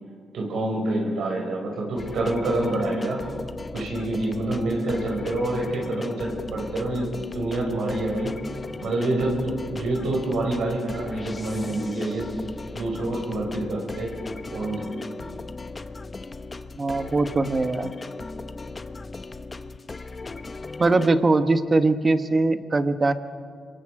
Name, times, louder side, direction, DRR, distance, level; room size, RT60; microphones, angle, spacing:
voice 1, 0.3-3.2 3.7-8.3 8.8-12.3 12.7-14.1 14.5-14.8, right 2 dB, 80° right, -1 dB, 5.6 m, -27 dB
sound 1, 2.0-21.1, left 3 dB, 30° left, 1.0 m, -37 dB
voice 2, 16.8-17.9 20.8-23.1, right 3 dB, 30° right, 10 dB, 1.3 m, -21 dB
27.0 x 22.0 x 4.9 m, 2.3 s
cardioid pair, 95°, 0 cm